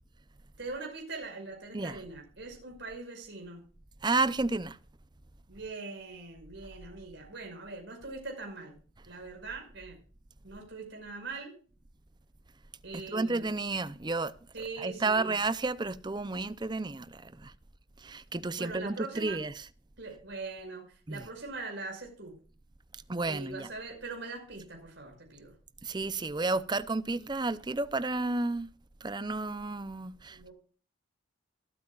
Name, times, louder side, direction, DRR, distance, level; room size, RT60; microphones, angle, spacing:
voice 1, 0.6-3.6 5.5-8.8 9.0-10.0 10.4-11.6 12.8-13.5 14.5-15.3 18.6-19.4 20.0-22.4 23.3-25.5 30.3-30.5, right 3 dB, 60° right, 5.6 m, -42 dB
voice 2, 4.0-4.8 13.1-14.3 14.8-17.5 18.0-19.6 21.1-21.3 23.1-23.7 25.8-28.7 29.0-30.5, right 3 dB, 20° right, 0.6 m, -31 dB
24.0 x 8.5 x 2.4 m
head